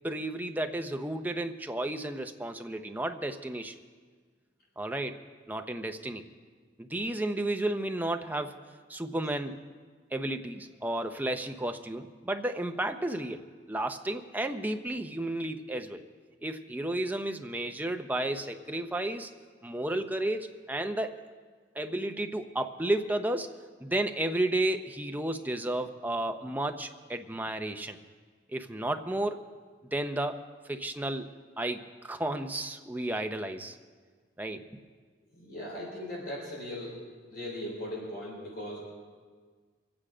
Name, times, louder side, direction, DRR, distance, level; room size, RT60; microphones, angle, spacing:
voice 1, 0.0-3.7 4.8-5.2 5.5-6.2 6.8-8.6 8.9-9.6 10.1-16.0 16.4-19.3 19.6-21.2 21.8-23.5 23.8-28.0 28.5-29.4 29.9-30.4 30.7-31.3 31.6-33.8 34.4-34.6, right 1 dB, 10° right, 5 dB, 0.6 m, -32 dB
voice 2, 35.3-37.0 37.3-38.8, left 1 dB, 55° left, -3 dB, 3.7 m, -38 dB
24.0 x 8.8 x 5.0 m, 1.5 s
head